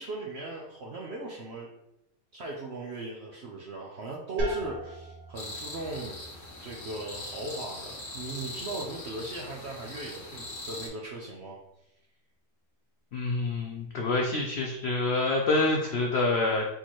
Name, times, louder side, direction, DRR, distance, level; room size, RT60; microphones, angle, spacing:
voice 1, 0.0-1.7 2.3-6.2 6.6-11.6, right 2 dB, 65° right, -2 dB, 0.6 m, -38 dB
sound 1, 4.4-9.9, right 1 dB, 90° right, 1.8 m, -39 dB
sound 2, 5.3-10.9, left 2 dB, 55° left, 1.5 m, -41 dB
voice 2, 13.1-16.6, left 2 dB, 80° left, 1 dB, 0.5 m, -27 dB
4.2 x 3.8 x 3.0 m, 0.87 s
omnidirectional pair, 1.8 m